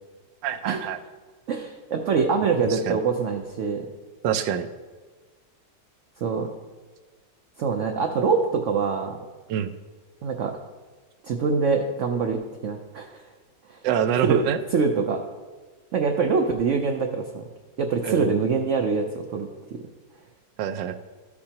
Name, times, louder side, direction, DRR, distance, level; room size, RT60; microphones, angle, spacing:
voice 1, 0.4-1.0 2.7-3.0 4.2-4.7 9.5-9.7 13.8-14.6 18.0-18.3 20.6-21.0, right 8 dB, 80° right, 11 dB, 1.2 m, -25 dB
voice 2, 1.5-3.9 6.2-6.5 7.6-9.2 10.2-10.6 11.2-13.2 13.7-13.8 14.2-14.4 14.7-15.2 15.9-17.5 17.8-19.8, right 5 dB, 65° right, 3 dB, 0.7 m, -24 dB
13.5 x 6.6 x 2.9 m, 1.3 s
omnidirectional pair, 2.0 m